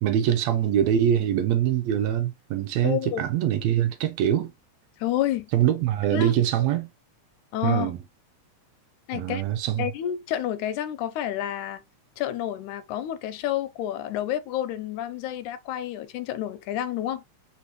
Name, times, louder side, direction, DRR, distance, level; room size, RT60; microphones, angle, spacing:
voice 1, 0.0-4.5 5.5-6.9 7.6-8.0 9.1-9.9, right 10 dB, 80° right, 1.7 m, -23 dB
voice 2, 2.8-3.3 5.0-5.5 6.1-6.3 7.5-8.0 9.1-9.4 9.8-11.8 12.2-17.2, left 11 dB, 85° left, 2.0 m, -29 dB
4.2 x 4.1 x 3.0 m
omnidirectional pair, 3.5 m